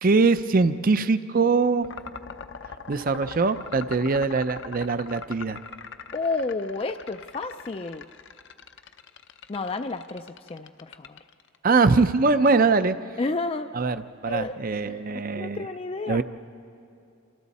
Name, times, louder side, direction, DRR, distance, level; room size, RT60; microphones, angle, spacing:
voice 1, 0.0-1.9 2.9-5.6 11.6-13.0 13.7-14.0 14.2-15.6 16.1-16.2, right 4 dB, 45° right, 12 dB, 0.6 m, -22 dB
sound 1, 1.8-11.6, left 5 dB, 60° left, 0.7 m, -42 dB
voice 2, 6.1-8.1 9.5-11.2 13.2-13.7 14.2-14.6 14.9-16.2, left 3 dB, 30° left, 7 dB, 0.4 m, -31 dB
28.5 x 26.5 x 4.2 m, 2.7 s
head